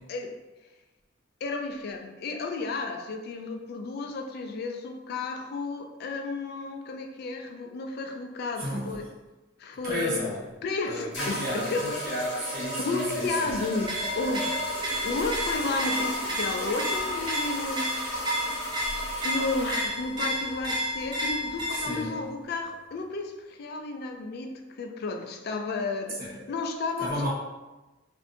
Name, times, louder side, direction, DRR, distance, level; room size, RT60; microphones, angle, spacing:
voice 1, 1.4-9.1 9.6-10.3 10.6-11.8 12.8-14.5 14.8-17.9 18.6-18.7 19.2-27.3, left 3 dB, 55° left, 5 dB, 0.3 m, -32 dB
voice 2, 8.5-8.9 9.8-10.4 10.8-13.5 21.8-22.2 26.2-26.3 27.0-27.3, equal, 50° right, -6 dB, 0.8 m, -32 dB
sound 1, 11.1-19.9, equal, 75° left, 1.0 m, -34 dB
sound 2, 13.8-22.1, equal, 25° right, 0.5 m, -32 dB
2.7 x 2.1 x 2.6 m, 1.1 s
head